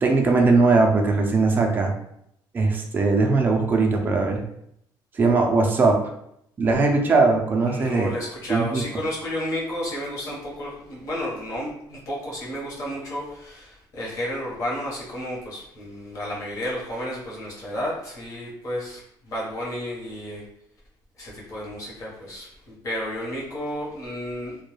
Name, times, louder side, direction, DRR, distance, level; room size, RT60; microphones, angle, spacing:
voice 1, 0.0-1.9 2.5-4.4 5.1-6.0 6.6-8.1 8.5-8.8, right 3 dB, 25° right, 2 dB, 0.4 m, -20 dB
voice 2, 7.6-20.4 21.2-24.6, equal, 40° left, -5 dB, 1.0 m, -32 dB
2.2 x 2.1 x 3.1 m, 0.75 s
cardioid pair, 155°, 8 cm